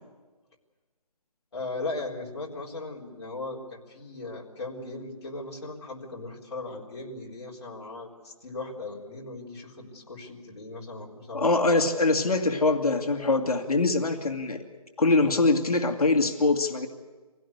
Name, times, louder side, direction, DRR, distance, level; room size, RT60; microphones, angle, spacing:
voice 1, 1.5-11.8 13.2-13.4, left 2 dB, 45° left, -2 dB, 4.1 m, -38 dB
voice 2, 11.3-14.6 15.0-16.9, left 3 dB, 70° left, 5 dB, 2.1 m, -23 dB
25.5 x 17.0 x 8.1 m, 1.3 s
hypercardioid pair, 170°, 20 cm